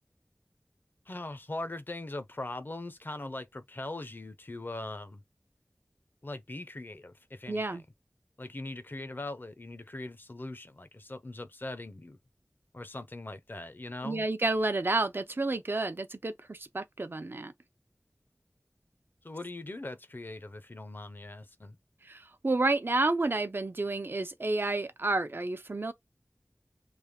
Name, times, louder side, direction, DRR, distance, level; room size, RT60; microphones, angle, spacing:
voice 1, 1.1-5.2 6.2-7.8 8.4-12.2 12.7-14.3 19.2-21.8, left 2 dB, 50° left, 0.7 m, -41 dB
voice 2, 7.5-7.8 14.0-17.5 22.1-25.9, right 2 dB, 55° right, 0.5 m, -30 dB
3.4 x 2.2 x 3.5 m
wide cardioid pair, 50°, 4 cm